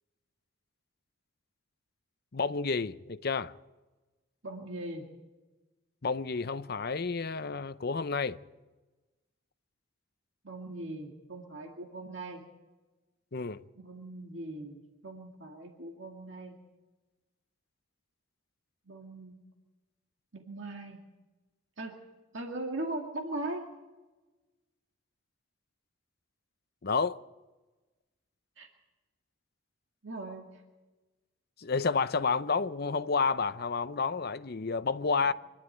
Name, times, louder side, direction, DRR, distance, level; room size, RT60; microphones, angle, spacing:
voice 1, 2.3-3.5 6.0-8.4 13.3-13.6 26.8-27.2 31.6-35.3, left 4 dB, 50° left, 0.7 m, -30 dB
voice 2, 4.4-5.1 10.4-12.4 13.8-16.6 18.9-19.4 20.3-21.0 21.8-22.0 22.3-23.7 28.6-28.7 30.0-30.6 35.3-35.4, right 2 dB, 65° right, 2.2 m, -40 dB
25.5 x 12.0 x 9.1 m
head